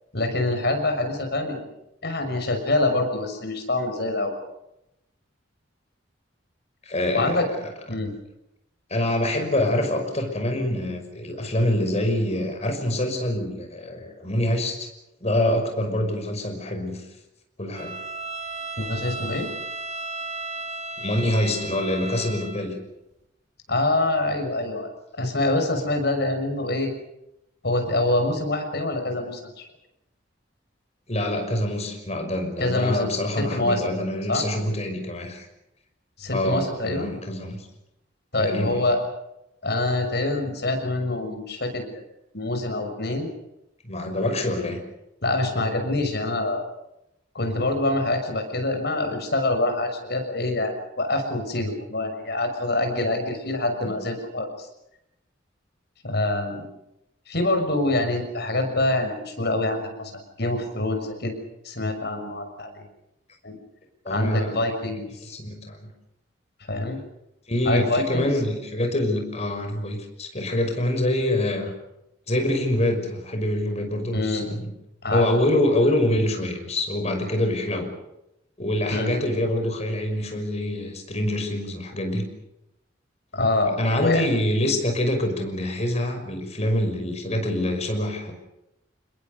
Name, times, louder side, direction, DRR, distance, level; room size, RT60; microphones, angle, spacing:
voice 1, 0.1-1.6 2.0-4.4 7.1-7.4 7.9-8.1 18.8-19.5 23.7-24.9 25.2-26.9 27.6-29.7 32.6-33.1 33.4-34.0 34.3-34.4 36.2-37.2 38.3-39.0 39.6-42.0 42.3-43.3 45.2-46.6 47.3-54.7 56.0-56.7 57.3-61.4 61.6-62.9 63.4-63.6 64.1-65.3 66.7-67.0 67.6-68.3 74.1-74.5 75.0-75.4 78.9-79.1 83.3-84.2, left 2 dB, 60° left, 5 dB, 6.4 m, -25 dB
voice 2, 6.9-7.4 8.9-14.9 15.2-17.0 17.6-17.9 21.0-22.7 31.1-35.5 36.3-37.6 38.4-38.9 43.8-44.8 53.8-53.9 64.0-64.5 65.2-65.9 67.5-71.7 72.3-74.7 75.1-77.9 78.6-82.2 83.7-88.3, left 1 dB, 35° left, 5 dB, 5.8 m, -25 dB
Bowed string instrument, 17.7-22.6, right 2 dB, 35° right, 3.3 m, -34 dB
28.0 x 21.5 x 6.8 m, 0.87 s
head